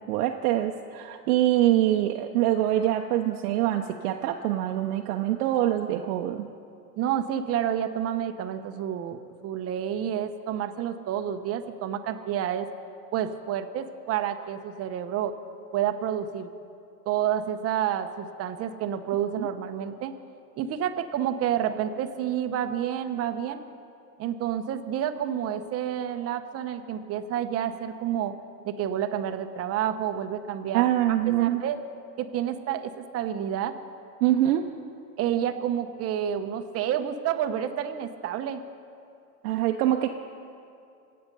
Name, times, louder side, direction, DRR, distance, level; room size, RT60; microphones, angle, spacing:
voice 1, 0.0-6.5 19.4-19.5 30.7-31.6 34.2-34.6 39.4-40.1, right 13 dB, 65° right, 3 dB, 0.9 m, -24 dB
voice 2, 7.0-12.7 13.1-15.4 15.7-16.5 17.0-20.2 20.6-23.6 24.2-28.3 28.6-30.9 31.4-31.8 32.2-33.7 35.2-38.6, right 10 dB, 30° right, 8 dB, 0.9 m, -29 dB
24.5 x 8.7 x 5.4 m, 2.6 s
supercardioid pair, 135°, 48 cm